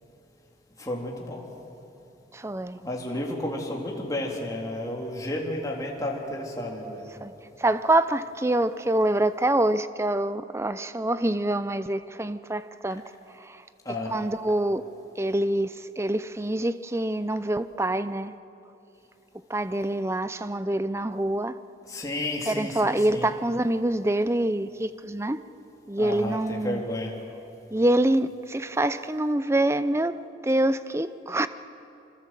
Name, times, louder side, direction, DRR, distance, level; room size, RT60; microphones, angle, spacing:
voice 1, 0.8-1.4 2.8-7.0 13.9-14.1 21.9-23.3 26.0-27.1, left 1 dB, 20° left, 3.4 m, -32 dB
voice 2, 2.3-2.8 7.2-7.3 7.6-13.0 13.4-13.6 14.1-14.8 15.2-18.3 19.5-21.6 22.5-25.4 25.9-26.8 27.7-30.2 30.4-31.5, right 1 dB, 15° right, 0.6 m, -25 dB
26.0 x 25.5 x 7.6 m
head